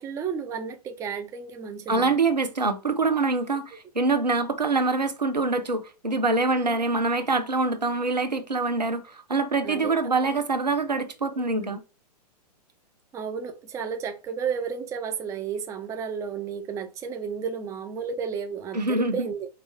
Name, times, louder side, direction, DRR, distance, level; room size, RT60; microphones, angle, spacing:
voice 1, 0.0-2.2 6.5-6.8 9.6-9.9 10.2-10.3 11.4-11.8 13.1-19.5, right 6 dB, 15° right, 0.4 m, -33 dB
voice 2, 1.9-11.8 18.7-19.3, right 3 dB, 90° right, 0.6 m, -25 dB
4.5 x 2.4 x 3.3 m
figure-of-eight pair, 105°, 21 cm